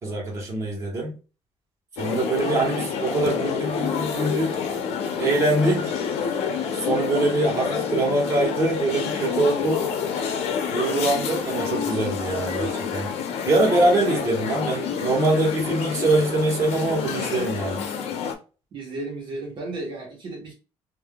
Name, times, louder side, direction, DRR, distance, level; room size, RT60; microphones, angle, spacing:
voice 1, 0.0-1.1 2.0-4.6 5.2-5.9 6.7-9.8 10.7-13.1 13.4-17.8, right 2 dB, 25° right, 1.4 m, -23 dB
sound 1, 2.0-18.3, left 6 dB, 80° left, 0.8 m, -28 dB
voice 2, 18.7-20.5, right 2 dB, 50° right, 1.3 m, -34 dB
3.5 x 2.7 x 2.3 m
cardioid pair, 160°, 11 cm